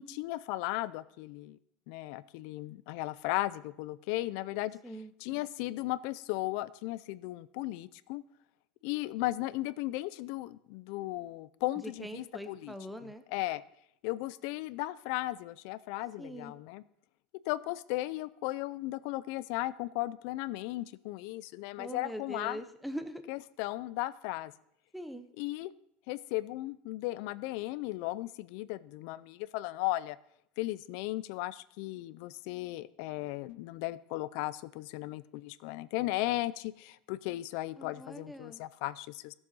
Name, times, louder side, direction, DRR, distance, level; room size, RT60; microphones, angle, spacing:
voice 1, 0.0-1.6 1.9-4.8 5.2-8.2 8.8-12.7 13.3-13.6 14.0-16.8 17.5-22.6 23.3-24.5 25.4-25.7 26.1-30.2 30.6-39.3, left 17 dB, 55° left, 17 dB, 0.4 m, -36 dB
voice 2, 11.8-13.2 16.2-16.5 21.8-23.2 24.9-25.3 37.8-38.6, equal, ahead, 8 dB, 0.6 m, -42 dB
15.5 x 7.1 x 4.0 m, 0.72 s
cardioid pair, 170°, 4 cm